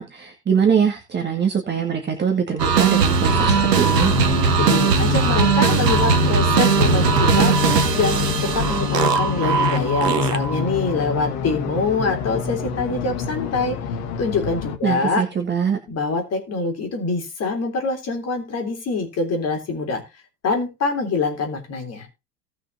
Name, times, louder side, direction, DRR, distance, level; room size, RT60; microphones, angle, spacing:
voice 1, 0.0-4.1 14.8-15.8, right 7 dB, 20° right, 3 dB, 2.0 m, -22 dB
sound 1, 2.6-10.7, right 6 dB, 70° right, 1.4 m, -19 dB
sound 2, 3.0-14.8, left 7 dB, 50° left, 1.7 m, -26 dB
voice 2, 4.6-7.6 7.9-13.7 14.2-15.2 15.9-20.0 20.4-22.1, left 4 dB, 30° left, 4 dB, 3.6 m, -25 dB
18.0 x 6.2 x 2.8 m, 0.26 s
figure-of-eight pair, 80°, 49 cm